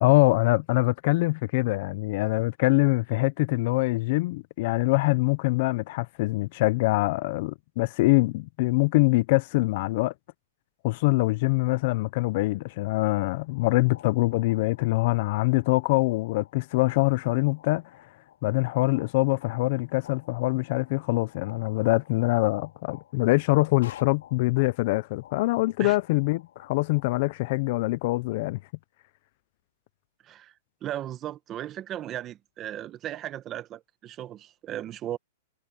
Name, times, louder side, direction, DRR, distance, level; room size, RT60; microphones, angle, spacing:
voice 1, 0.0-10.1 10.8-17.8 18.4-28.6, left 22 dB, 40° left, 0.4 m, -24 dB
sound 1, 13.5-27.0, left 11 dB, 70° left, 3.0 m, -52 dB
voice 2, 30.2-30.5 30.8-35.2, right 12 dB, 20° right, 1.0 m, -36 dB
supercardioid pair, 170°, 0 cm